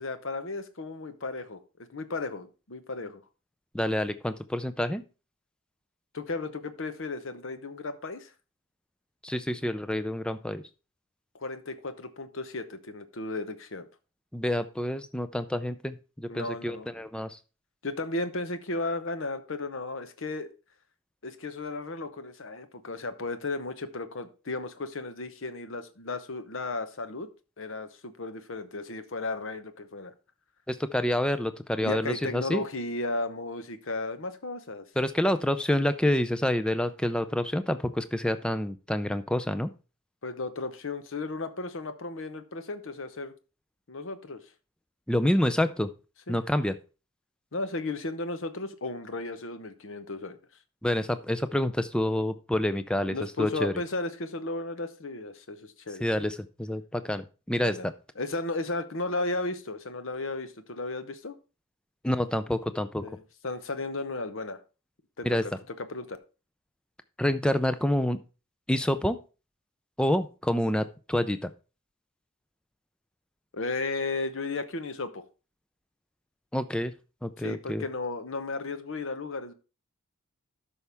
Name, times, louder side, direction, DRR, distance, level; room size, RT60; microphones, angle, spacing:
voice 1, 0.0-1.6 1.9-3.2 6.1-8.3 11.3-13.9 16.3-16.9 17.8-20.5 21.2-27.3 27.6-30.1 31.8-34.9 40.2-43.3 43.9-44.4 46.3-46.4 47.5-50.4 53.1-56.3 57.6-57.9 58.2-61.3 63.0-64.6 65.2-65.3 65.9-66.2 73.5-75.2 77.4-79.5, left 2 dB, 55° left, 0.8 m, -34 dB
voice 2, 3.7-5.0 9.2-10.6 14.3-17.4 30.7-32.6 35.0-39.7 45.1-45.9 46.3-46.7 50.8-53.7 56.0-57.9 62.0-63.0 65.2-65.5 67.2-68.2 68.7-69.2 70.0-71.5 76.5-76.9 77.2-77.8, left 1 dB, 5° left, 0.4 m, -28 dB
12.5 x 5.6 x 3.4 m
head